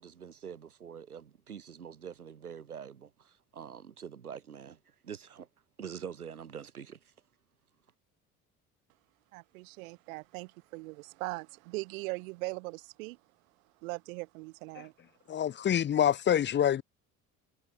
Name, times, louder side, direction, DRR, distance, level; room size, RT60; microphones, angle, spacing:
voice 1, 0.0-5.5 5.8-7.1, right 7 dB, 85° right, 2.6 m, -45 dB
voice 2, 9.3-13.2 13.8-14.9, right 25 dB, 70° right, 0.6 m, -40 dB
voice 3, 15.3-16.8, left 10 dB, 25° left, 0.6 m, -26 dB
figure-of-eight pair, 55°, 43 cm